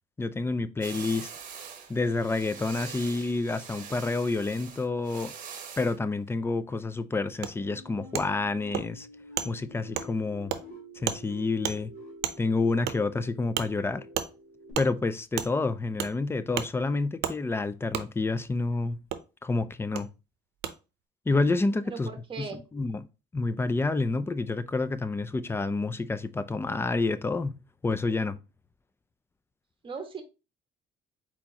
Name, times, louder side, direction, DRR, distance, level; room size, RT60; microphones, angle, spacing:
voice 1, 0.2-1.3 1.9-5.3 5.8-9.1 9.4-10.5 11.0-11.9 12.4-14.0 14.8-19.0 19.4-20.1 21.3-22.1 22.4-23.0 23.3-28.4, left 3 dB, 15° left, 0.4 m, -29 dB
sound 1, 0.8-6.0, right 7 dB, 50° right, 1.1 m, -44 dB
Wood, 7.4-7.5 8.1-8.2 8.7-8.8 9.4-9.5 9.9-10.1 10.5-10.6 11.1-11.2 11.6-11.8 12.2-12.4 12.9-13.0 13.5-13.7 14.1-14.3 14.7-14.9 15.4-15.5 16.0-16.1 16.5-16.7 17.2-17.3 17.9-18.0 19.1-19.2 19.9-20.0 20.6-20.7, right 10 dB, 80° right, 0.7 m, -31 dB
sound 2, 7.7-14.7, equal, 80° left, 2.7 m, -48 dB
voice 2, 21.8-22.6 29.8-30.2, right 5 dB, 30° right, 1.3 m, -38 dB
4.4 x 4.3 x 2.8 m
cardioid pair, 110°, 17 cm